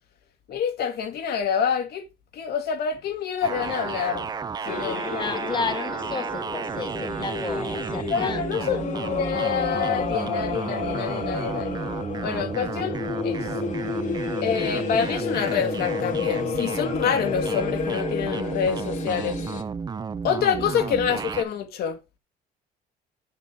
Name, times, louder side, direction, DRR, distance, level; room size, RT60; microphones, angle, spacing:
voice 1, 0.5-2.1 2.3-4.3 4.6-5.0 8.1-11.8 12.2-13.0 13.2-13.7 14.4-19.4 20.2-22.0, left 7 dB, 65° left, 1.5 m, -27 dB
sound 1, 3.4-21.4, right 5 dB, 25° right, 0.5 m, -32 dB
sound 2, 4.6-19.6, left 6 dB, 45° left, 1.2 m, -31 dB
voice 2, 5.1-8.7 20.6-20.7, left 4 dB, 25° left, 1.0 m, -32 dB
7.5 x 5.3 x 3.3 m
cardioid pair, 110°, 17 cm